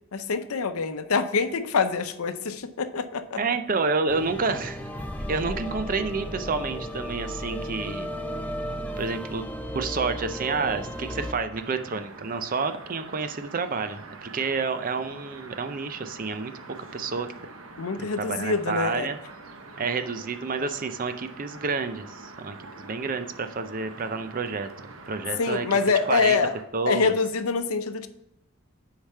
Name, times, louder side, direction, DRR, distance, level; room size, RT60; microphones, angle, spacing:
voice 1, 0.1-3.4 17.8-19.1 25.4-26.5 26.9-28.1, left 4 dB, 90° left, 10 dB, 0.7 m, -25 dB
voice 2, 3.4-4.9 5.3-8.1 9.0-9.4 9.7-17.3 18.0-19.2 19.8-25.7 26.1-26.4 26.7-27.1, right 4 dB, 40° right, 9 dB, 0.5 m, -29 dB
sound 1, 4.1-11.3, equal, 5° left, 0.6 m, -34 dB
sound 2, 11.5-26.6, right 3 dB, 75° right, 0.9 m, -45 dB
6.9 x 4.8 x 5.5 m, 0.86 s
head